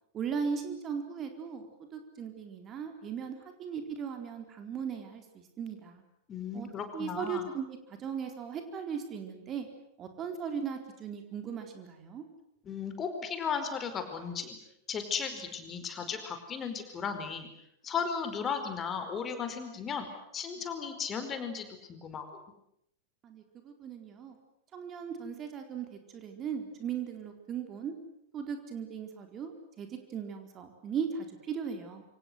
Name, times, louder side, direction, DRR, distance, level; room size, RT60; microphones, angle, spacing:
voice 1, 0.1-1.7 1.9-6.0 6.5-6.7 6.9-9.7 10.0-12.2 23.2-24.4 24.7-27.9 28.3-32.0, right 6 dB, 30° right, 5 dB, 4.2 m, -38 dB
voice 2, 6.3-7.5 12.6-14.6 14.9-17.5 17.8-20.1 20.3-22.2, left 6 dB, 25° left, 7 dB, 4.9 m, -35 dB
28.0 x 26.0 x 8.0 m, 0.75 s
figure-of-eight pair, 90°, 0 cm